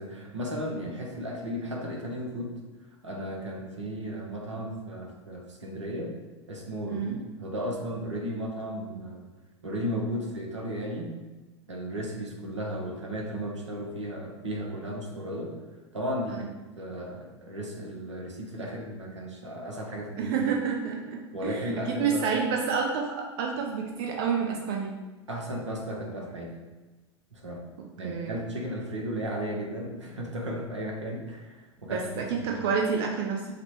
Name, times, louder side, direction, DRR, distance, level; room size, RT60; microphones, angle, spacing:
voice 1, 0.0-2.6 3.0-6.1 6.5-9.3 9.6-11.1 11.7-15.5 15.9-16.5 16.8-20.3 21.3-22.2 25.3-26.5 27.3-27.6 28.0-32.6, equal, 80° right, 0 dB, 0.9 m, -35 dB
voice 2, 20.2-24.9 28.0-28.4 31.9-33.5, right 6 dB, 50° right, 0 dB, 0.6 m, -29 dB
5.0 x 2.2 x 4.4 m, 1.2 s
figure-of-eight pair, 85°, 15 cm